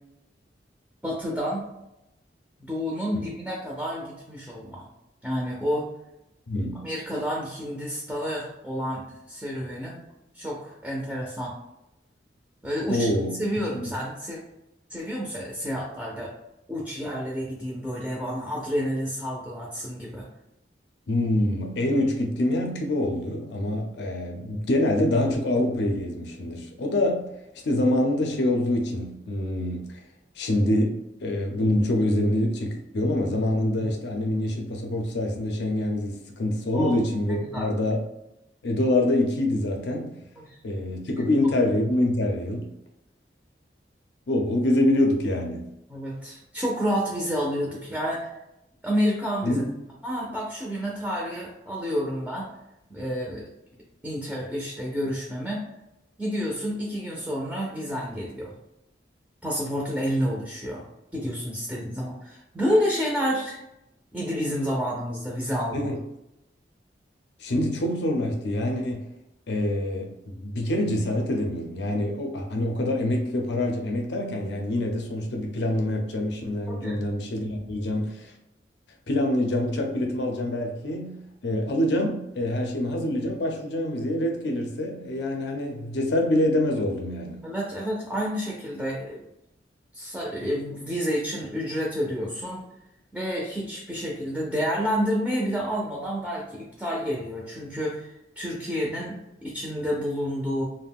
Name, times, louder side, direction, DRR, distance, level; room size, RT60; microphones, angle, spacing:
voice 1, 1.0-1.7 2.6-4.9 5.2-5.9 6.8-10.0 10.3-11.5 12.6-13.1 13.4-14.4 14.9-16.3 16.7-20.3 36.7-37.0 37.3-37.7 40.4-40.6 41.2-41.3 45.9-48.3 48.8-49.6 50.0-52.5 52.9-53.4 54.0-55.6 56.2-58.5 59.4-60.8 61.1-63.6 64.1-65.9 76.7-77.0 87.4-89.2 89.9-92.6 93.1-98.1 98.4-99.2 99.4-100.6, equal, 5° right, -4 dB, 0.4 m, -29 dB
voice 2, 6.5-6.9 12.9-13.4 13.8-13.9 21.1-27.3 27.6-29.9 30.4-38.0 38.6-40.1 40.6-42.7 44.3-45.7 49.4-49.6 65.7-66.0 67.4-69.0 69.5-78.3 79.1-87.4, left 1 dB, 70° left, 3 dB, 0.5 m, -25 dB
2.4 x 2.1 x 3.4 m, 0.87 s
head